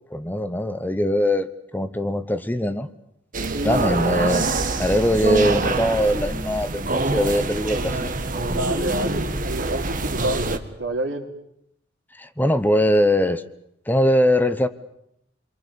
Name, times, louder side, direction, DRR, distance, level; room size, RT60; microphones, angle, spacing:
voice 1, 0.1-1.5 1.7-2.9 3.6-4.5 4.8-8.1 12.2-13.4 13.9-14.7, equal, 10° left, 11 dB, 1.0 m, -21 dB
sound 1, 3.3-10.6, right 2 dB, 45° right, 1.7 m, -25 dB
voice 2, 3.5-4.1 8.5-10.5 10.8-11.3, right 1 dB, 80° right, 5 dB, 3.1 m, -28 dB
28.5 x 23.0 x 7.0 m, 0.75 s
head